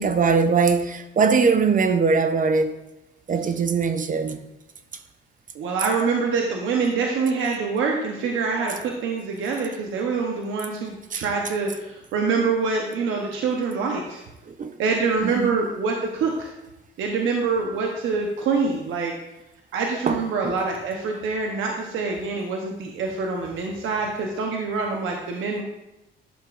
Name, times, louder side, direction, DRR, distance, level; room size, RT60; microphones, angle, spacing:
voice 1, 0.0-2.8 3.3-4.4 11.1-11.2 14.5-14.8 15.2-15.6 20.1-20.6, right 5 dB, 40° right, 8 dB, 0.7 m, -21 dB
voice 2, 5.5-14.2 14.8-16.5 17.0-19.2 19.7-25.6, right 4 dB, 80° right, 1 dB, 1.0 m, -25 dB
11.5 x 6.8 x 2.5 m, 0.93 s
cardioid pair, 90°, 20 cm